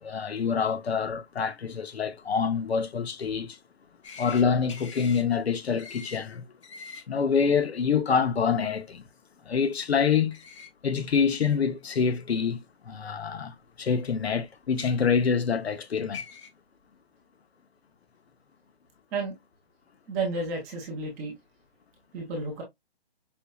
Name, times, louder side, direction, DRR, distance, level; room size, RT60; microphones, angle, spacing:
voice 1, 0.0-3.6 4.2-6.5 7.1-9.1 9.4-10.4 10.8-12.6 12.8-16.2, left 6 dB, 80° left, 0.9 m, -26 dB
sound 1, 4.0-4.4 4.7-5.2 5.8-6.2 6.6-7.0 10.3-10.7 11.5-11.6 12.8-12.9 14.6-14.9 15.8-15.9 16.1-16.5, left 5 dB, 30° left, 0.7 m, -42 dB
voice 2, 20.1-21.3 22.1-22.6, right 3 dB, 10° right, 0.5 m, -31 dB
5.4 x 2.9 x 2.2 m
hypercardioid pair, 150°, 31 cm